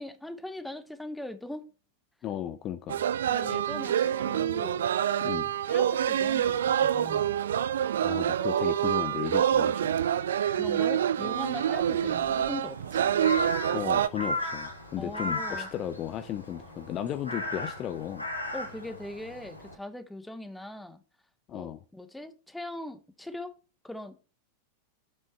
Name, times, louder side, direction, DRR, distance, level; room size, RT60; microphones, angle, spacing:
voice 1, 0.0-1.7 3.3-4.9 5.7-7.3 10.5-13.1 15.0-15.7 18.5-21.0 21.5-23.5 23.8-24.2, left 1 dB, 5° left, 0.8 m, -40 dB
voice 2, 2.2-3.0 5.2-5.5 8.0-9.9 13.7-18.3 21.5-21.8, left 11 dB, 35° left, 0.5 m, -35 dB
sound 1, 2.9-14.1, right 10 dB, 65° right, 0.3 m, -27 dB
Crow, 11.3-19.8, left 1 dB, 85° left, 1.9 m, -37 dB
8.0 x 5.5 x 4.1 m
figure-of-eight pair, 90°, 0 cm